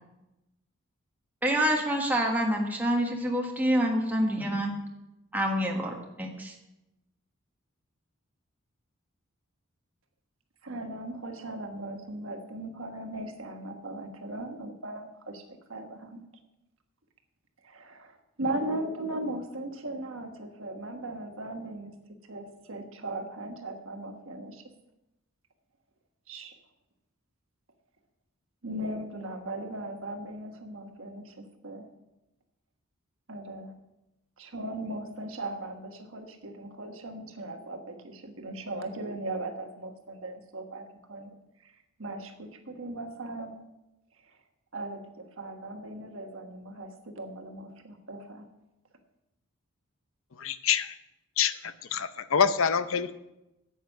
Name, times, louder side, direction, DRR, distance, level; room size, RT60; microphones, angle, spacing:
voice 1, 1.4-4.8 5.3-6.5, equal, 10° right, 0 dB, 1.5 m, -27 dB
voice 2, 10.6-15.4 15.7-16.2 17.6-21.9 22.3-24.6 26.3-26.5 28.6-31.9 33.3-33.7 34.4-41.3 41.6-41.7 42.0-43.6 44.2-44.4 44.7-48.5, right 1 dB, 65° right, 5 dB, 1.4 m, -38 dB
voice 3, 50.4-50.9 51.4-51.5 51.9-53.1, left 7 dB, 65° left, 13 dB, 0.6 m, -25 dB
9.1 x 8.2 x 6.5 m, 0.94 s
head